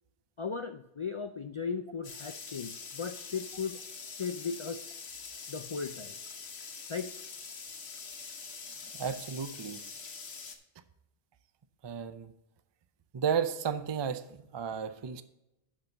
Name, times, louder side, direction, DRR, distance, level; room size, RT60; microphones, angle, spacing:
voice 1, 0.4-4.9 5.5-6.1 6.9-7.1, left 5 dB, 55° left, 8 dB, 0.3 m, -37 dB
sound 1, 2.0-10.5, left 5 dB, 85° left, 1.3 m, -44 dB
voice 2, 8.9-9.8 11.8-12.3 13.1-15.2, right 7 dB, 35° right, 11 dB, 0.4 m, -33 dB
11.5 x 5.5 x 3.9 m, 0.89 s
omnidirectional pair, 1.1 m